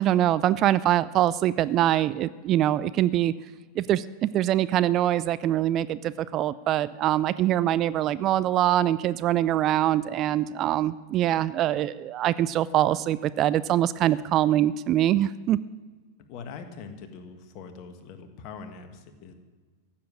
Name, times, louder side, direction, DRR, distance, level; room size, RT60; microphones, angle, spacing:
voice 1, 0.0-3.3 3.8-15.6, right 12 dB, 35° right, 17 dB, 0.4 m, -24 dB
voice 2, 16.3-19.3, left 5 dB, 40° left, 7 dB, 1.7 m, -42 dB
15.5 x 7.5 x 9.9 m, 1.4 s
figure-of-eight pair, 90°, 0 cm